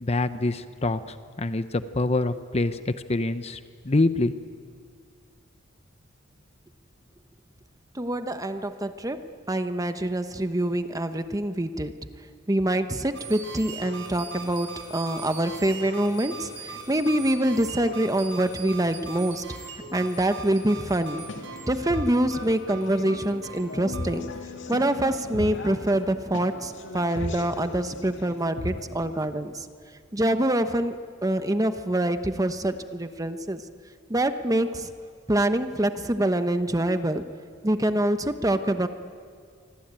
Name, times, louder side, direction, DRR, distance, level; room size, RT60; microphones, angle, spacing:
voice 1, 0.0-3.6 3.8-4.3, left 2 dB, 35° left, 11 dB, 0.9 m, -25 dB
voice 2, 7.9-12.0 12.5-19.5 19.9-21.2 21.7-24.3 24.7-29.7 30.1-33.6 34.1-34.9 35.3-37.2 37.6-38.9, right 1 dB, 20° right, 9 dB, 1.1 m, -25 dB
sound 1, 13.1-24.2, right 3 dB, 90° right, 6.1 m, -40 dB
sound 2, 21.0-29.3, left 1 dB, 65° left, 2.3 m, -37 dB
26.5 x 24.5 x 9.0 m, 2.1 s
head